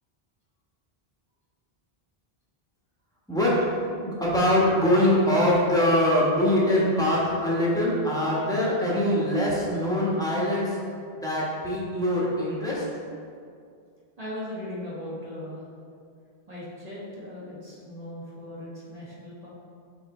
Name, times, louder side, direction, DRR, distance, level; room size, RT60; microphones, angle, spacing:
voice 1, 3.3-3.6 4.0-10.8 11.1-12.9, left 1 dB, 5° left, -7 dB, 1.2 m, -23 dB
voice 2, 14.2-15.7 16.5-19.5, left 1 dB, 40° right, -8 dB, 1.8 m, -38 dB
5.6 x 4.2 x 4.3 m, 2.3 s
omnidirectional pair, 1.0 m